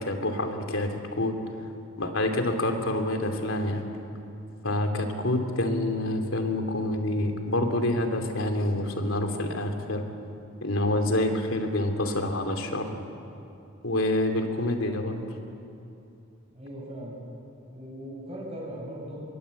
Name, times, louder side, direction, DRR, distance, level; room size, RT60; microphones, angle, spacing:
voice 1, 0.0-1.3 2.0-3.9 4.6-10.0 10.6-13.0 13.8-15.2, left 1 dB, 80° left, 4 dB, 2.9 m, -27 dB
voice 2, 16.5-17.2 17.7-19.2, right 1 dB, 30° right, -4 dB, 7.4 m, -39 dB
27.0 x 22.5 x 8.4 m, 2.7 s
head